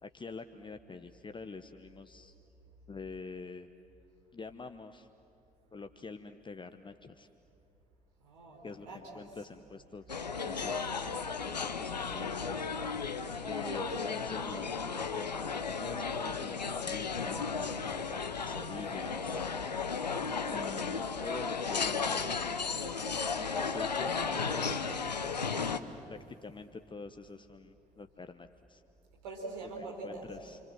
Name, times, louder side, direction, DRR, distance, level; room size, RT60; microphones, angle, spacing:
voice 1, 0.0-2.3 2.9-3.7 4.3-5.1 5.7-7.3 8.6-10.0 10.4-10.9 11.4-12.7 13.5-17.9 18.4-19.4 20.5-22.5 23.0-24.9 26.1-28.8 29.6-30.6, left 4 dB, 25° left, 8 dB, 1.0 m, -46 dB
voice 2, 8.2-9.2 18.0-18.1 19.9-20.2 25.3-25.7 29.2-30.3, right 3 dB, 75° right, -1 dB, 4.6 m, -44 dB
sound 1, 10.1-25.8, left 5 dB, 90° left, 0.7 m, -34 dB
29.0 x 26.0 x 7.7 m, 2.8 s
figure-of-eight pair, 45°, 21 cm